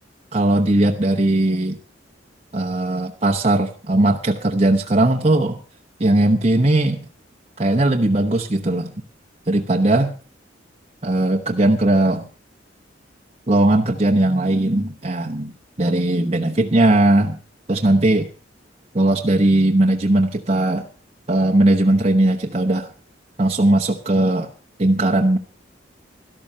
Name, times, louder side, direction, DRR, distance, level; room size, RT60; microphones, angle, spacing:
voice 1, 0.3-1.8 2.5-5.6 6.0-7.1 7.6-8.9 9.5-10.2 11.0-12.3 13.5-15.5 15.8-17.4 17.7-18.3 18.9-20.9 21.3-22.9 23.4-24.5 24.8-25.4, right 1 dB, 35° right, 2 dB, 1.0 m, -18 dB
13.0 x 12.5 x 5.4 m, 0.36 s
head